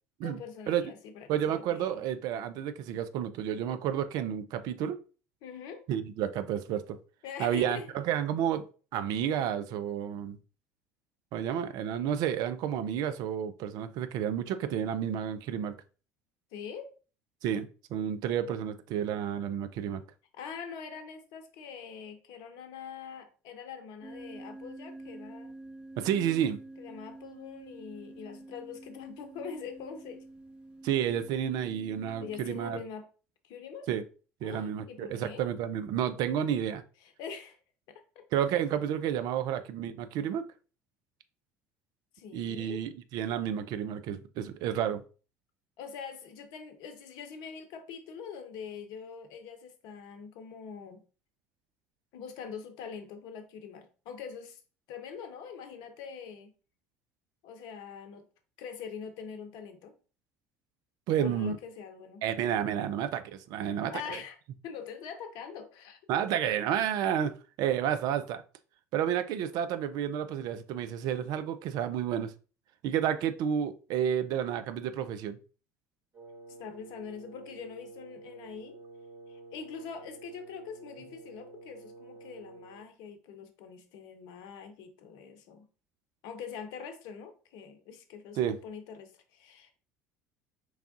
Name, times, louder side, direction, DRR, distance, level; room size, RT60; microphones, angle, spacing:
voice 1, 0.2-1.3 1.6-2.0 5.4-5.8 7.2-7.9 16.5-16.9 20.3-25.5 26.8-30.2 32.2-33.1 33.4-33.9 34.4-35.4 37.0-37.6 37.9-38.2 42.1-42.8 45.8-51.0 52.1-54.6 54.9-56.5 57.4-58.3 58.6-59.9 61.2-62.2 63.9-64.4 64.6-66.0 66.4-66.6 76.6-78.8 79.3-85.7 86.2-89.8, left 6 dB, 60° left, 0.7 m, -43 dB
voice 2, 1.3-5.0 5.9-7.0 7.4-8.7 8.9-10.4 11.3-15.7 17.4-20.0 26.0-26.6 30.8-32.8 33.9-34.0 34.4-36.8 38.3-40.5 42.3-45.0 61.1-61.6 62.2-64.2 66.1-68.4 68.9-72.3 72.8-75.4 88.4-88.6, right 9 dB, 55° right, 0.4 m, -31 dB
sound 1, 24.0-32.8, right 2 dB, 15° right, 1.3 m, -48 dB
Wind instrument woodwind instrument, 76.1-82.9, right 3 dB, 35° right, 1.7 m, -50 dB
4.8 x 3.4 x 2.5 m
figure-of-eight pair, 65°, 8 cm